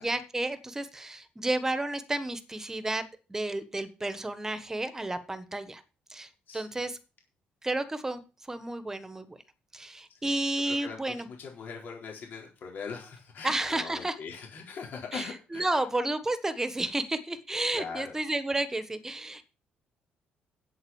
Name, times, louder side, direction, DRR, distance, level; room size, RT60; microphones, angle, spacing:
voice 1, 0.0-3.0 3.3-5.8 6.1-7.0 7.6-8.2 8.5-9.4 9.7-11.3 13.4-14.1 15.1-19.4, right 2 dB, 15° right, 11 dB, 1.5 m, -31 dB
voice 2, 10.1-15.8 17.7-18.2, left 5 dB, 60° left, 0 dB, 4.1 m, -41 dB
8.2 x 8.1 x 7.2 m, 0.34 s
cardioid pair, 105°, 3 cm